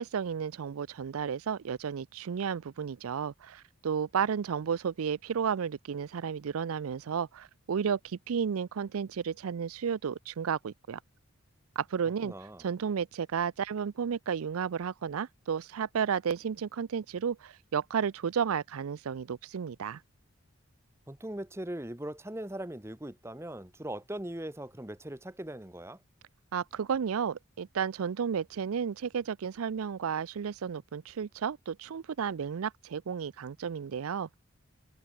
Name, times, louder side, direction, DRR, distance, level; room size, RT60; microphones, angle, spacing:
voice 1, 0.0-11.0 11.8-12.3 12.6-20.0 26.5-34.4, right 7 dB, 85° right, 0.4 m, -32 dB
voice 2, 12.2-12.6 21.1-26.0, right 1 dB, 10° right, 1.0 m, -40 dB
head